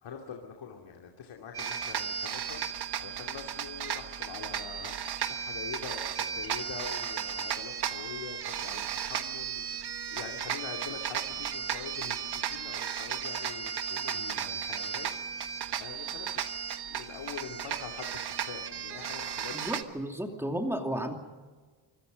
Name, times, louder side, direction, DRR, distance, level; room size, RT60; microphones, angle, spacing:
voice 1, 0.0-15.4 15.7-16.6 16.9-19.8, left 7 dB, 80° left, 1 dB, 2.8 m, -44 dB
sound 1, 1.5-19.8, right 8 dB, 55° right, 1.4 m, -35 dB
voice 2, 19.5-21.1, right 1 dB, 5° right, 3 dB, 2.6 m, -33 dB
25.5 x 25.5 x 5.3 m, 1.4 s
wide cardioid pair, 170°, 47 cm